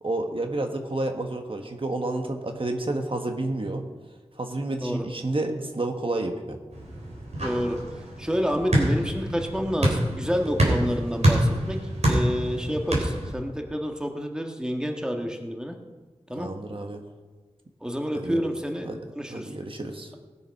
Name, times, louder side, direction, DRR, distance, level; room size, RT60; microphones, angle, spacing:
voice 1, 0.0-3.8 4.4-6.6 16.3-17.0 18.1-18.4 18.8-19.0 19.3-20.1, right 2 dB, 50° right, 4 dB, 1.4 m, -30 dB
sound 1, 6.7-13.3, right 1 dB, 80° right, 4.1 m, -26 dB
voice 2, 7.4-7.8 8.2-15.8 16.3-16.5 17.8-18.9 19.1-19.5, equal, 5° right, 3 dB, 1.6 m, -29 dB
19.0 x 7.1 x 5.9 m, 1.3 s
wide cardioid pair, 55°, 11 cm